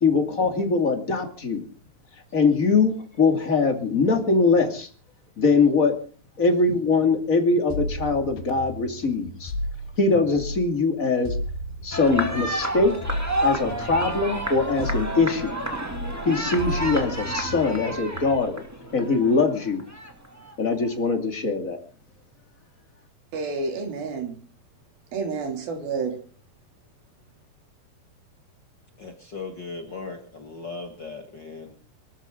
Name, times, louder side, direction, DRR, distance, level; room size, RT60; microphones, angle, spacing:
voice 1, 0.0-1.7 2.3-4.9 5.4-6.0 6.4-9.5 10.0-11.4 11.8-13.1 13.4-15.8 16.2-18.6 18.9-19.8 20.6-21.8, left 4 dB, 25° left, 2.1 m, -22 dB
sound 1, 7.7-10.8 11.3-15.7 15.9-18.4, left 1 dB, 85° left, 3.9 m, -34 dB
sound 2, 11.9-20.7, equal, 5° right, 1.9 m, -30 dB
voice 2, 23.3-24.4 25.1-26.2, right 4 dB, 75° right, 4.8 m, -29 dB
voice 3, 29.0-31.7, left 4 dB, 45° left, 1.6 m, -37 dB
24.5 x 13.5 x 3.8 m
omnidirectional pair, 4.3 m